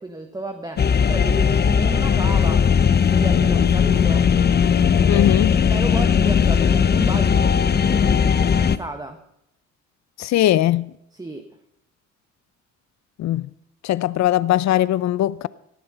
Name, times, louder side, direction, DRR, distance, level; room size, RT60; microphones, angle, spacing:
voice 1, 0.0-2.7 3.1-4.3 5.1-5.3 5.6-9.2 11.1-11.5, right 2 dB, 15° right, 1.3 m, -33 dB
sound 1, 0.8-8.8, left 7 dB, 35° left, 0.8 m, -18 dB
voice 2, 5.1-5.5 10.2-10.9 13.2-13.5 13.8-15.5, left 13 dB, 65° left, 0.6 m, -20 dB
18.0 x 11.5 x 5.6 m
cardioid pair, 90°, 30 cm